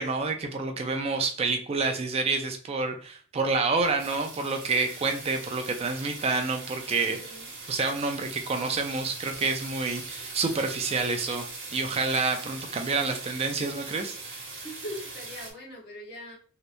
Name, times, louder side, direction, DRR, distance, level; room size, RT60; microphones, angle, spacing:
voice 1, 0.0-7.2 7.7-11.4 11.7-14.1, right 3 dB, 30° right, 5 dB, 0.3 m, -28 dB
sound 1, 3.7-15.5, right 3 dB, 65° right, 1.1 m, -41 dB
voice 2, 7.1-7.5 14.6-16.4, equal, 55° left, -2 dB, 1.2 m, -41 dB
3.2 x 2.8 x 2.5 m, 0.42 s
head